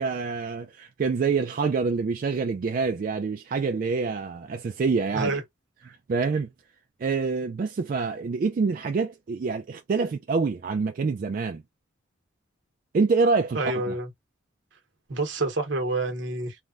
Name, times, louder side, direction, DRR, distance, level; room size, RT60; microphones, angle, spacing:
voice 1, 0.0-5.3 5.9-6.5 7.0-11.6 12.9-14.0, right 4 dB, 45° right, 0.3 m, -26 dB
voice 2, 13.5-14.1 15.1-16.6, right 2 dB, 75° right, 1.0 m, -27 dB
3.3 x 2.1 x 2.4 m
head